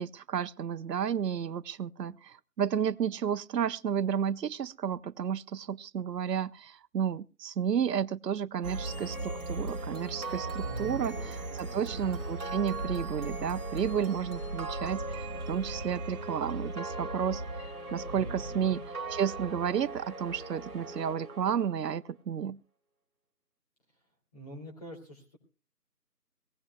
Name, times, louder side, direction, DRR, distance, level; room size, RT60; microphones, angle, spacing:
voice 1, 0.0-17.4 17.9-22.6, right 8 dB, 80° right, 0.6 m, -32 dB
sound 1, 8.6-21.9, right 2 dB, 60° right, 2.5 m, -37 dB
voice 2, 10.6-12.1 18.1-18.8 24.3-25.4, right 2 dB, 25° left, 2.7 m, -46 dB
21.5 x 16.0 x 2.3 m
figure-of-eight pair, 175°, 49 cm